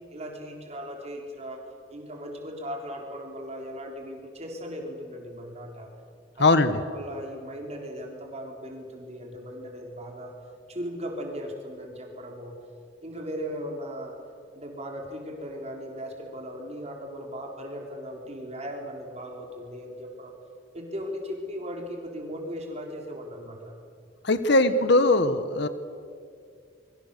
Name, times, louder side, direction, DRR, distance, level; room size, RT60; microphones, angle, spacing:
voice 1, 0.0-1.6 1.9-5.9 6.4-6.6 6.9-10.3 10.7-12.6 13.0-14.2 14.5-20.3 20.7-23.7 24.5-25.0, equal, 35° right, 1 dB, 3.5 m, -38 dB
voice 2, 6.4-6.8 24.2-25.7, left 2 dB, 60° left, 11 dB, 1.4 m, -20 dB
27.5 x 23.5 x 6.8 m, 2.4 s
head